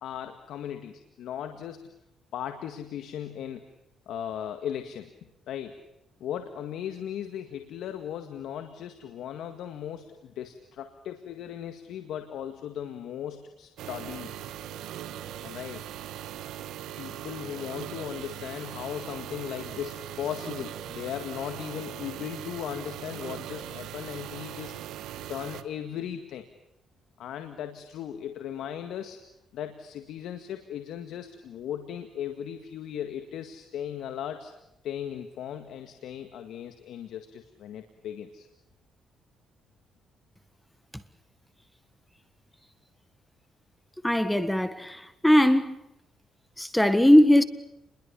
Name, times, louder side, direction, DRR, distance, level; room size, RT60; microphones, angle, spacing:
voice 1, 0.0-1.9 2.3-3.6 4.1-5.1 5.5-5.8 6.2-14.4 15.4-15.9 17.0-24.8 25.2-26.5 27.2-29.2 29.5-34.5 34.8-38.5, left 9 dB, 80° left, 1.9 m, -37 dB
sound 1, 13.8-25.6, right 11 dB, 85° right, 1.6 m, -40 dB
voice 2, 44.0-45.8 46.6-47.4, left 1 dB, 5° left, 1.6 m, -20 dB
29.0 x 22.0 x 7.1 m
cardioid pair, 90°, 0 cm